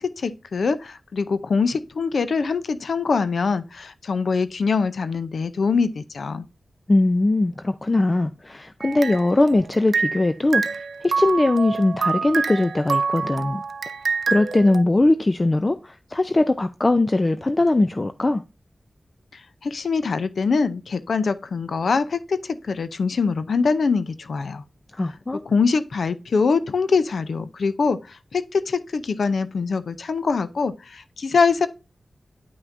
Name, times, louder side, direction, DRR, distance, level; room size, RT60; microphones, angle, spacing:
voice 1, 0.0-6.4 19.6-24.6 25.5-28.0 28.3-31.7, left 4 dB, 80° left, 0.5 m, -23 dB
voice 2, 6.9-13.6 14.3-18.4 25.0-25.4, left 2 dB, 30° left, 0.4 m, -20 dB
sound 1, 8.8-10.3 10.5-14.8, right 5 dB, 90° right, 0.5 m, -26 dB
9.4 x 5.8 x 2.6 m
wide cardioid pair, 90°, 0 cm